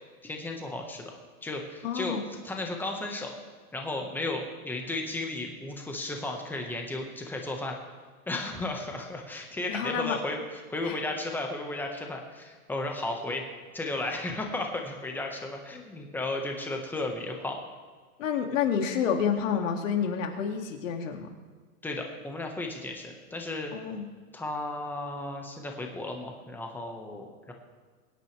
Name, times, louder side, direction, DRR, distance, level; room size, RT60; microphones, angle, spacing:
voice 1, 0.2-2.2 2.4-3.3 3.7-7.8 8.3-13.5 13.7-17.6 21.8-23.7 24.3-27.5, left 2 dB, 5° left, 2 dB, 1.4 m, -34 dB
voice 2, 1.8-2.2 9.7-10.2 10.8-11.0 18.2-21.3 23.7-24.1, left 7 dB, 55° left, 3 dB, 2.5 m, -29 dB
24.0 x 10.5 x 3.4 m, 1.5 s
hypercardioid pair, 145°, 46 cm